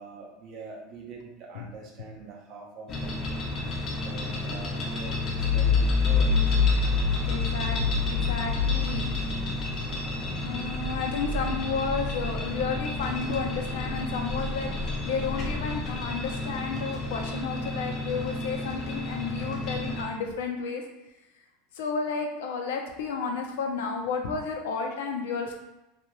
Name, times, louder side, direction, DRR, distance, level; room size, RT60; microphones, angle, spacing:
voice 1, 0.0-3.2 3.9-6.7, right 3 dB, 35° right, 0 dB, 0.5 m, -44 dB
sound 1, 2.9-20.0, left 1 dB, 25° left, 0.4 m, -33 dB
sound 2, 5.0-13.2 13.6-16.2, left 5 dB, 75° right, 0.6 m, -28 dB
voice 2, 7.3-9.1 10.4-20.8 21.8-25.5, left 5 dB, 85° left, 3 dB, 0.5 m, -32 dB
2.5 x 2.3 x 2.9 m, 0.95 s
supercardioid pair, 175°, 0 cm